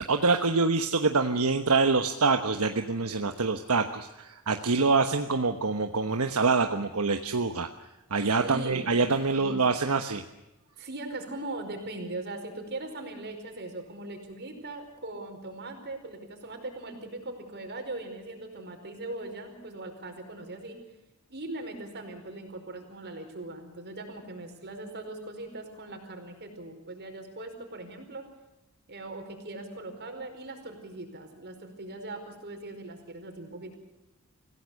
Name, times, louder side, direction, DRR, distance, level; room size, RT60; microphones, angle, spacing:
voice 1, 0.0-7.7 8.1-10.2, right 4 dB, 75° right, 6 dB, 1.2 m, -25 dB
voice 2, 8.4-9.0 9.3-9.6 10.8-20.8 21.3-28.2 28.9-33.7, right 2 dB, 50° right, 5 dB, 5.0 m, -40 dB
26.0 x 17.0 x 6.5 m, 1.0 s
head